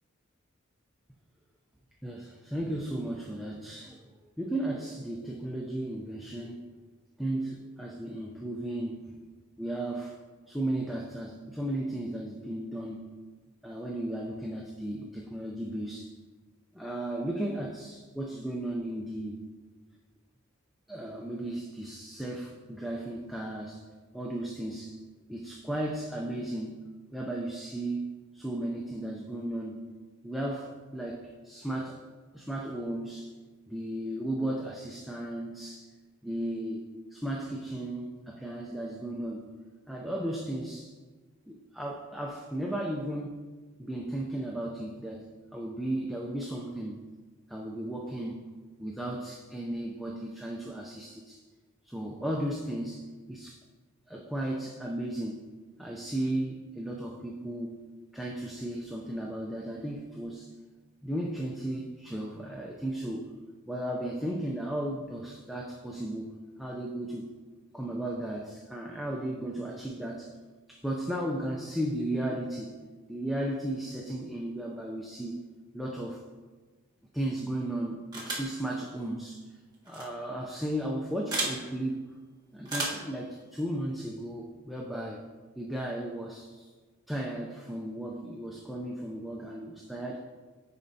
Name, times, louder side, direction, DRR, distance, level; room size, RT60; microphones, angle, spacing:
voice 1, 2.0-4.0 4.4-6.8 7.2-9.2 9.6-10.2 10.5-13.2 13.6-16.1 16.7-19.5 20.9-23.8 24.1-25.0 25.3-29.8 30.2-32.0 32.3-33.3 33.7-35.9 36.2-39.5 39.9-40.9 41.5-43.4 43.8-45.3 45.5-47.1 47.5-48.5 48.8-51.4 51.8-53.6 54.1-55.5 55.8-57.8 58.1-60.5 61.0-63.3 63.7-66.3 66.6-67.3 67.7-70.3 70.7-72.8 73.1-75.4 75.7-76.2 77.1-79.4 79.9-82.0 82.5-85.2 85.6-86.7 87.1-90.2, right 1 dB, ahead, -2 dB, 0.4 m, -35 dB
sound 1, 78.1-78.6 79.9-80.0 81.3-81.6 82.7-83.1, right 2 dB, 20° right, 1.3 m, -32 dB
10.0 x 4.3 x 2.7 m, 1.4 s
head